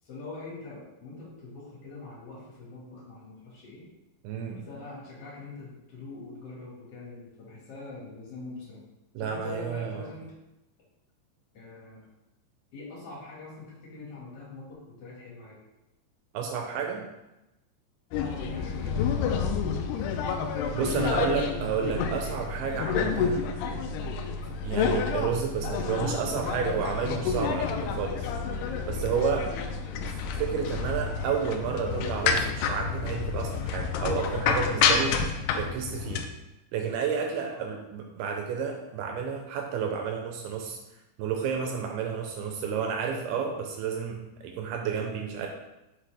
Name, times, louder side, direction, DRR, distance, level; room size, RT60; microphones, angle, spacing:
voice 1, 0.0-3.9 4.5-8.8 9.2-10.3 11.5-12.0 12.7-15.6 18.1-19.5 20.7-20.8 21.1-22.1 29.1-29.4 34.7-35.1 37.5-37.8, left 3 dB, 50° left, -5 dB, 2.1 m, -43 dB
voice 2, 4.2-4.5 9.2-10.1 16.3-17.1 20.7-23.5 24.6-28.3 28.9-29.5 30.4-35.2 35.6-36.2 36.7-40.8 41.2-45.5, right 6 dB, 80° right, 3 dB, 2.3 m, -31 dB
sound 1, 18.1-36.2, left 5 dB, 85° left, 2.4 m, -29 dB
5.7 x 5.7 x 3.4 m, 0.95 s
omnidirectional pair, 5.1 m